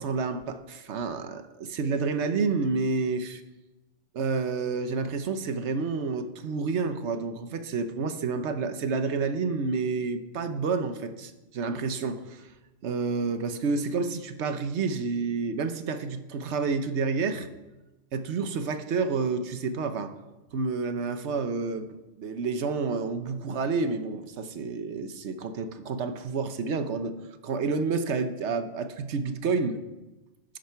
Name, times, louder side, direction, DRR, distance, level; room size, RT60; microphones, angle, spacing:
voice 1, 0.0-3.4 4.1-12.5 12.8-17.5 18.1-20.1 20.5-21.8 22.2-27.2 27.4-29.8, right 4 dB, 70° right, 9 dB, 1.2 m, -29 dB
12.5 x 10.5 x 4.6 m, 1.1 s
omnidirectional pair, 1.2 m